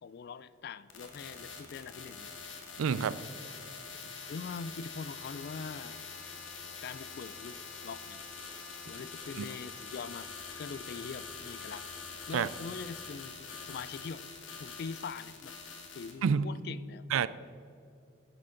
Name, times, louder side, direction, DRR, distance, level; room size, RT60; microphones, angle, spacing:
voice 1, 0.0-2.3 4.3-6.0 6.8-8.2 8.8-11.9 12.3-14.2 14.6-15.6 15.9-17.1, left 5 dB, 50° left, 17 dB, 0.3 m, -43 dB
sound 1, 0.9-16.1, left 5 dB, 70° left, 1.4 m, -45 dB
voice 2, 2.8-3.2 9.4-9.5 12.3-12.5 16.2-16.5 17.1-17.3, right 6 dB, 85° right, 16 dB, 0.4 m, -28 dB
10.0 x 9.9 x 3.9 m, 2.6 s
head